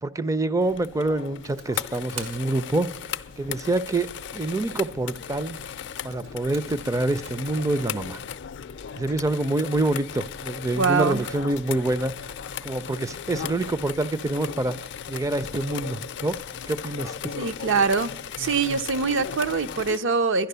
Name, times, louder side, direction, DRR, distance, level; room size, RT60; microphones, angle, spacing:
voice 1, 0.0-2.9 3.4-4.1 4.3-5.6 6.0-8.2 9.0-12.1 12.6-14.7 15.1-16.4 16.7-17.1, right 2 dB, 15° right, 15 dB, 0.4 m, -26 dB
sound 1, 0.6-20.0, left 8 dB, 55° left, 0.4 m, -36 dB
Computer keyboard, 1.4-7.6, right 5 dB, 85° right, 1.9 m, -47 dB
voice 2, 10.8-11.2 17.4-18.1 18.4-20.5, right 4 dB, 60° right, 12 dB, 0.6 m, -23 dB
11.5 x 11.0 x 6.7 m, 0.80 s
head